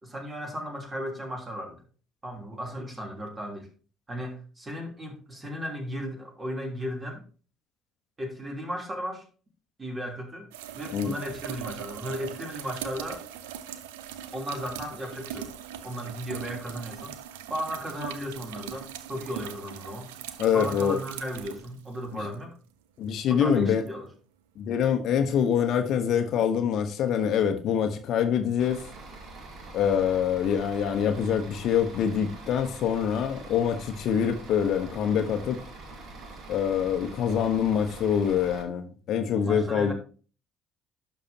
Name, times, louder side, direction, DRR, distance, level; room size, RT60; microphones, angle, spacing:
voice 1, 0.0-1.8 2.2-3.7 4.1-7.2 8.2-9.3 9.8-13.2 14.3-15.5 15.8-17.1 17.5-20.1 20.5-22.5 23.3-24.1 39.3-39.9, equal, 25° right, 1 dB, 3.3 m, -35 dB
sound 1, 10.5-22.3 23.9-24.0 28.8-28.9, right 9 dB, 75° right, 0.6 m, -40 dB
voice 2, 20.4-21.0 22.1-22.2 23.0-23.8 24.6-28.8 29.7-35.6 36.5-39.9, left 8 dB, 55° left, 8 dB, 0.9 m, -25 dB
Bus / Idling, 28.6-38.6, right 3 dB, 55° right, 2.0 m, -44 dB
11.5 x 6.0 x 2.8 m, 0.37 s
hypercardioid pair, 55°, 0 cm